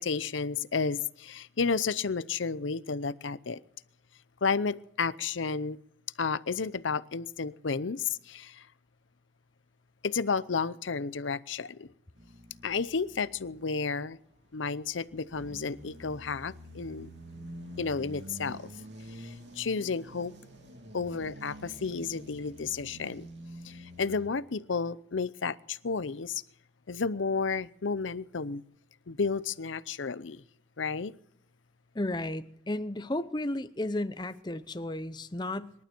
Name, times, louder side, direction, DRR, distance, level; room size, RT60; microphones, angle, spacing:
voice 1, 0.0-3.6 4.4-5.8 6.2-8.7 10.0-11.9 12.6-14.2 14.5-17.1 17.8-18.7 19.1-20.3 20.9-23.3 23.6-26.4 26.9-28.6 29.1-30.4 30.8-31.1, left 5 dB, 90° left, 0.7 m, -32 dB
sound 1, 12.2-13.9 14.5-24.3, equal, 70° right, 3.1 m, -47 dB
voice 2, 31.9-35.7, left 1 dB, 25° left, 0.8 m, -33 dB
26.5 x 12.0 x 4.5 m
head